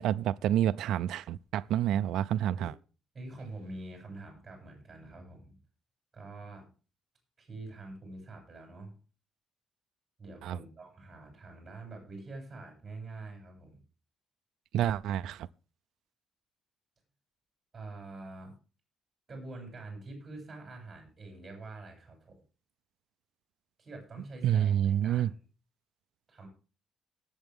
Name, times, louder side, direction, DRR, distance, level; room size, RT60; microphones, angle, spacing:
voice 1, 0.0-2.7 10.4-10.6 14.7-15.5 24.4-25.3, right 11 dB, 75° right, 0.5 m, -28 dB
voice 2, 3.1-5.6 6.1-6.7 7.4-8.9 10.2-13.8 17.7-18.5 19.3-22.4 23.8-25.4 26.3-26.5, right 2 dB, 20° right, 7.6 m, -46 dB
19.0 x 8.0 x 3.6 m
cardioid pair, 155°, 0 cm